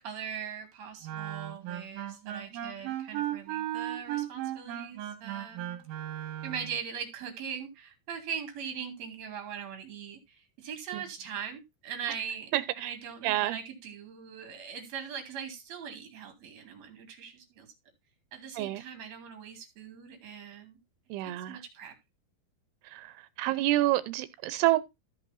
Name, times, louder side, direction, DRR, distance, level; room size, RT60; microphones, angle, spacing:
voice 1, 0.0-5.8 6.4-12.5 12.7-17.7 18.3-20.8 21.2-21.9, right 7 dB, 45° right, 3.4 m, -41 dB
Wind instrument woodwind instrument, 1.0-6.8, right 12 dB, 70° right, 2.9 m, -36 dB
voice 2, 12.5-13.0 13.2-13.6 18.6-18.8 21.1-21.6 22.9-23.1 23.4-24.8, right 16 dB, 90° right, 2.7 m, -28 dB
14.0 x 5.4 x 4.0 m
omnidirectional pair, 4.6 m